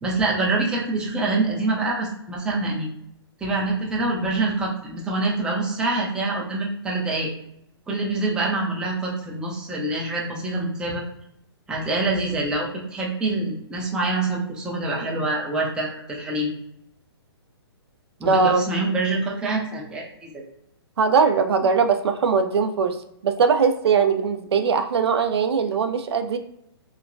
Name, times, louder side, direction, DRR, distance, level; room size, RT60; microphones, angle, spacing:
voice 1, 0.0-2.9 3.4-7.3 7.9-11.0 11.7-16.5 18.2-20.4, right 2 dB, 5° right, -3 dB, 0.4 m, -25 dB
voice 2, 18.3-18.7 21.0-23.0 23.2-26.4, right 5 dB, 75° right, 7 dB, 0.4 m, -20 dB
2.9 x 2.2 x 2.5 m, 0.75 s
hypercardioid pair, 145°, 14 cm